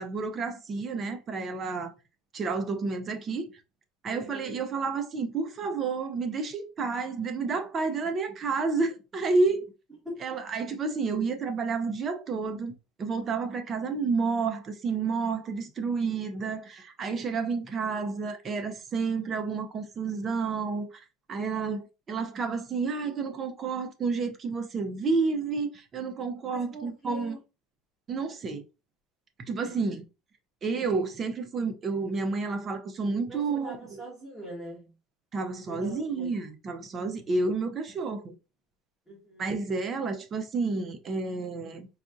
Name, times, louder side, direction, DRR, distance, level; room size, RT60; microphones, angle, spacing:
voice 1, 0.0-1.9 2.3-3.5 4.0-9.7 10.2-12.7 13.0-27.4 28.1-28.6 29.5-30.0 30.6-34.0 35.3-38.3 39.4-41.9, right 4 dB, 30° right, 0.6 m, -30 dB
voice 2, 4.1-4.6 10.0-10.2 26.5-27.4 29.6-29.7 33.3-34.9 35.7-36.3 37.1-37.2 39.1-39.5, equal, 15° right, 1.4 m, -43 dB
4.1 x 2.3 x 2.5 m
supercardioid pair, 135°, 0 cm